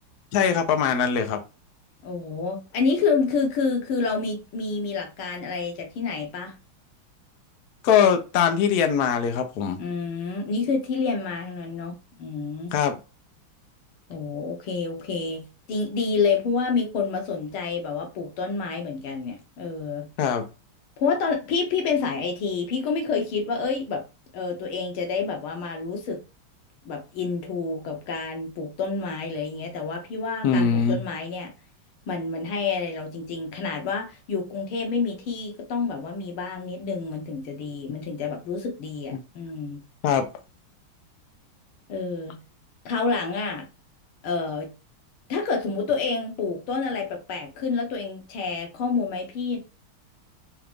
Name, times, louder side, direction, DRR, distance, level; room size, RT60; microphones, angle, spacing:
voice 1, 0.3-1.4 7.8-9.8 12.7-13.0 20.2-20.4 30.4-31.0 40.0-40.2, left 7 dB, 65° left, 1.0 m, -21 dB
voice 2, 2.0-6.5 9.8-12.8 14.1-20.1 21.0-24.0 24.3-26.2 26.9-31.5 32.1-39.8 41.9-42.4 42.9-43.7 44.2-44.7 45.3-49.6, left 4 dB, 90° left, 1.9 m, -28 dB
4.7 x 2.5 x 3.5 m
omnidirectional pair, 2.3 m